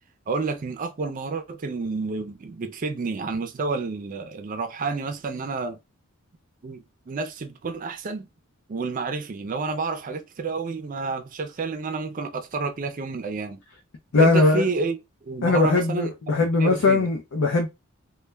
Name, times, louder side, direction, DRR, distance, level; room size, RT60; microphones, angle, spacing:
voice 1, 0.3-5.8 6.6-8.3 8.7-13.6 14.2-16.1 16.5-17.1, right 4 dB, 40° right, 0.4 m, -30 dB
voice 2, 14.1-14.6 15.4-17.7, left 3 dB, 85° left, 0.6 m, -20 dB
2.2 x 2.2 x 3.2 m
head